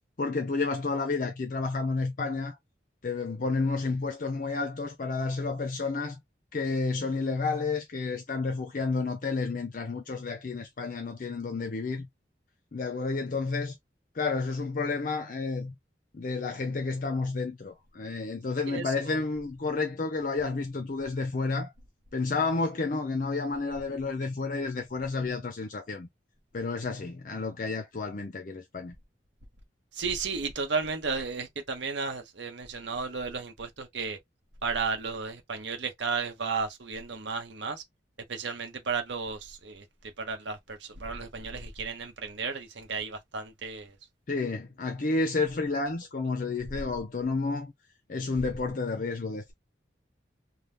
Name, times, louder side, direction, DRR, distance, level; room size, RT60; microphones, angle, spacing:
voice 1, 0.2-2.6 3.0-6.2 6.5-12.1 12.7-13.8 14.1-15.7 16.1-21.7 22.1-26.1 26.5-29.0 44.3-47.7 48.1-49.5, left 3 dB, 45° left, 0.5 m, -30 dB
voice 2, 18.7-19.1 29.9-34.2 34.6-37.8 38.3-39.8 40.2-44.0, right 5 dB, 75° right, 0.8 m, -33 dB
2.7 x 2.1 x 3.4 m
head